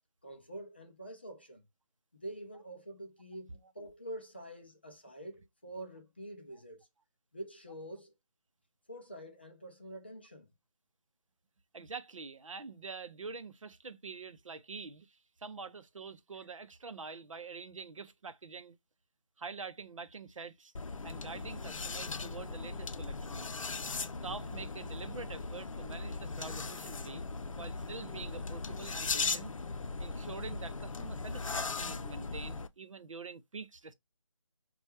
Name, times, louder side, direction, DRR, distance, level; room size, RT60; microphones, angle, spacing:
voice 1, 0.2-1.6 2.1-6.9 7.3-8.1 8.9-10.5 15.6-15.7, right 1 dB, 20° left, 0.4 m, -46 dB
voice 2, 11.7-18.8 19.4-20.7 21.0-23.5 24.2-27.2 27.6-29.5 30.0-33.9, right 4 dB, 80° right, 0.6 m, -46 dB
sound 1, 20.7-32.7, left 4 dB, 90° left, 0.5 m, -38 dB
4.2 x 2.3 x 3.1 m
figure-of-eight pair, 170°, 16 cm